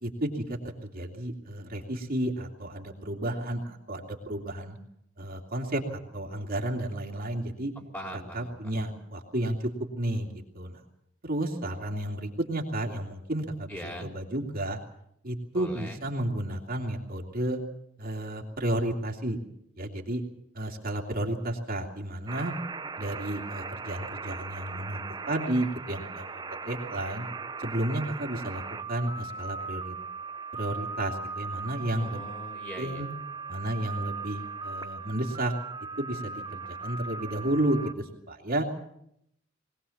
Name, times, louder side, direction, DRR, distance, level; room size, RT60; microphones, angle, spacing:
voice 1, 0.0-4.8 5.2-7.7 8.3-10.3 10.5-10.8 11.2-14.8 15.2-17.6 18.0-19.4 19.8-20.2 20.5-22.5 23.0-27.3 27.6-28.6 28.9-29.9 30.5-32.2 32.8-33.1 33.5-35.5 36.0-38.6, right 1 dB, 50° right, 0 dB, 2.7 m, -32 dB
voice 2, 7.7-8.9 13.7-14.1 15.5-16.0 32.0-33.1, equal, 10° left, 1 dB, 4.8 m, -41 dB
sound 1, 22.3-37.9, right 4 dB, 20° right, 0.7 m, -39 dB
21.5 x 18.5 x 7.2 m, 0.74 s
head